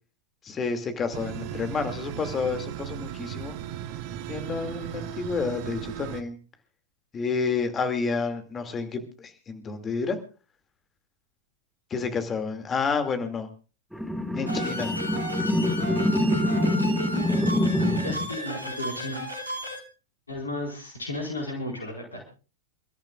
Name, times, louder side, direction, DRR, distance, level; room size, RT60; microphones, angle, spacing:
voice 1, 0.4-3.6 4.3-6.4 7.1-10.2 11.9-13.5 14.4-14.9, left 5 dB, 20° left, 7 dB, 2.4 m, -29 dB
sound 1, 1.1-6.2, right 11 dB, 45° right, 1.1 m, -36 dB
sound 2, 13.9-18.3, left 1 dB, ahead, 1.7 m, -25 dB
sound 3, 14.5-19.8, equal, 80° right, 2.7 m, -33 dB
voice 2, 18.0-19.2 20.3-22.2, left 2 dB, 80° left, 0 dB, 4.8 m, -34 dB
29.0 x 13.5 x 2.4 m, 0.34 s
figure-of-eight pair, 90°, 0 cm